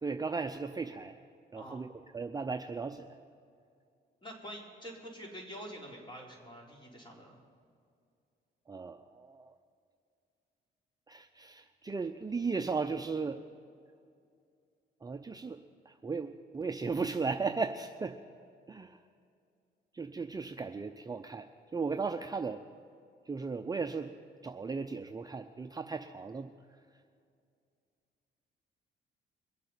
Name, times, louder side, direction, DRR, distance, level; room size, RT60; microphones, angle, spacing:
voice 1, 0.0-1.2 1.5-1.9 2.1-3.2 8.7-9.5 11.1-13.4 15.0-15.6 15.9-18.2 18.7-19.0 19.9-21.5 21.7-22.6 23.3-24.1 24.4-26.5, right 4 dB, 20° right, 6 dB, 0.6 m, -36 dB
voice 2, 4.2-7.4, equal, 25° left, -2 dB, 4.0 m, -46 dB
23.0 x 7.6 x 5.7 m, 2.3 s
cardioid pair, 90°, 20 cm